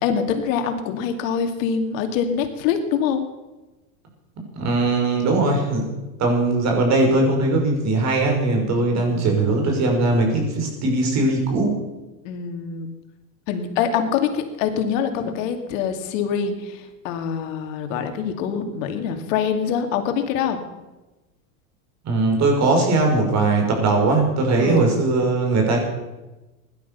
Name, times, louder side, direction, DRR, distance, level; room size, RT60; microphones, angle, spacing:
voice 1, 0.0-3.2 8.7-9.3 12.2-12.9 13.5-20.6 24.6-25.0, left 7 dB, 65° left, 6 dB, 2.5 m, -25 dB
voice 2, 4.5-5.9 6.2-11.8 22.0-25.8, right 2 dB, 40° right, 2 dB, 5.9 m, -20 dB
16.5 x 11.5 x 6.9 m, 1.1 s
supercardioid pair, 125°, 41 cm